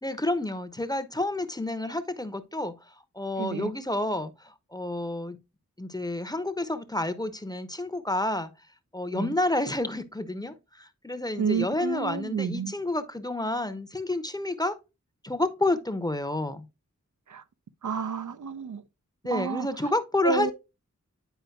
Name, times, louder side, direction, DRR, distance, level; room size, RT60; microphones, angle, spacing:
voice 1, 0.0-2.7 3.1-5.4 5.8-8.5 8.9-14.8 15.2-16.6 19.2-20.5, left 2 dB, 15° left, 0.7 m, -29 dB
voice 2, 3.4-3.7 9.1-9.3 11.4-12.7 17.3-17.4 17.8-18.8 19.3-19.7 20.2-20.5, right 6 dB, 75° right, 0.5 m, -30 dB
9.1 x 4.9 x 2.3 m
wide cardioid pair, 55°, 30 cm